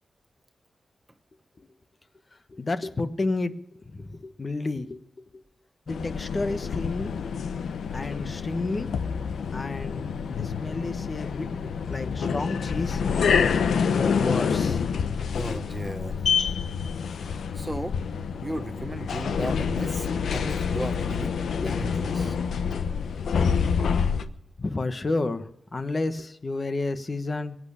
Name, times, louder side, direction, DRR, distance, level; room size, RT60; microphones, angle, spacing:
voice 1, 2.5-3.6 3.9-5.0 5.9-7.1 7.9-8.9 9.5-13.0 13.9-15.0 15.3-15.6 21.6-22.0 22.7-23.5 24.1-24.3 24.6-27.6, left 2 dB, 35° left, 10 dB, 1.2 m, -31 dB
sound 1, 5.9-24.2, left 6 dB, 90° left, 1.0 m, -27 dB
voice 2, 15.3-16.2 17.5-17.9 18.4-22.4, right 1 dB, 15° right, 10 dB, 1.1 m, -35 dB
23.0 x 8.7 x 6.9 m, 0.75 s
wide cardioid pair, 105°, 0 cm